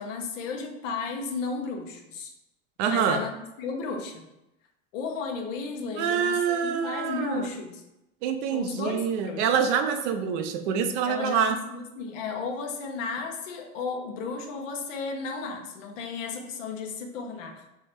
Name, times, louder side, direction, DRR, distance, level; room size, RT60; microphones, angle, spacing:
voice 1, 0.0-2.3 2.9-4.2 4.9-7.8 8.5-9.5 11.1-17.6, left 4 dB, 70° left, 3 dB, 1.0 m, -34 dB
voice 2, 2.8-3.2 6.0-7.5 8.2-11.6, right 7 dB, 60° right, 7 dB, 0.7 m, -26 dB
3.7 x 3.1 x 4.3 m, 0.91 s
hypercardioid pair, 90°, 39 cm